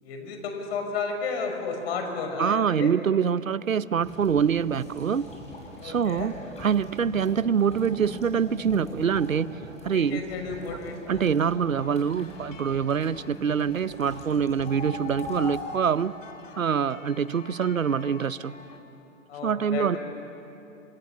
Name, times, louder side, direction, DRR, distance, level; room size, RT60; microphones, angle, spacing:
voice 1, 0.0-2.9 5.8-6.3 9.9-11.3 19.3-20.0, left 4 dB, 50° left, 4 dB, 5.9 m, -33 dB
voice 2, 2.4-5.3 5.8-10.2 11.1-16.1 16.6-18.5 19.4-20.0, right 7 dB, 80° right, 18 dB, 0.9 m, -25 dB
sound 1, 4.0-15.6, left 2 dB, 15° left, 6.6 m, -41 dB
sound 2, 11.7-18.8, left 5 dB, 70° left, 3.0 m, -48 dB
30.0 x 25.5 x 7.2 m, 2.9 s
figure-of-eight pair, 120°, 40 cm